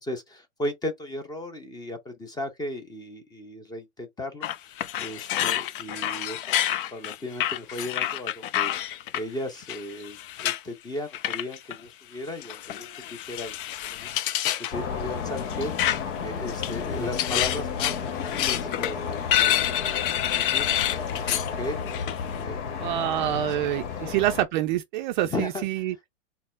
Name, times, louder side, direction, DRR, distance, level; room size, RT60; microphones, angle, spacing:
voice 1, 0.0-4.5 5.0-13.6 14.0-14.1 14.6-15.7 16.2-20.7 21.1-21.8 22.3-22.6 23.3-23.5 23.9-24.1 25.2-25.7, left 1 dB, 10° left, 0.7 m, -36 dB
sound 1, 4.4-9.2 9.7-10.6 11.1-11.8 12.4-14.7 15.4-16.2 16.5-21.5 21.9-22.2, left 12 dB, 45° left, 0.4 m, -28 dB
sound 2, 14.7-24.4, left 6 dB, 65° left, 1.1 m, -32 dB
voice 2, 22.8-26.1, right 13 dB, 40° right, 0.5 m, -27 dB
4.0 x 2.0 x 3.8 m
hypercardioid pair, 120°, 38 cm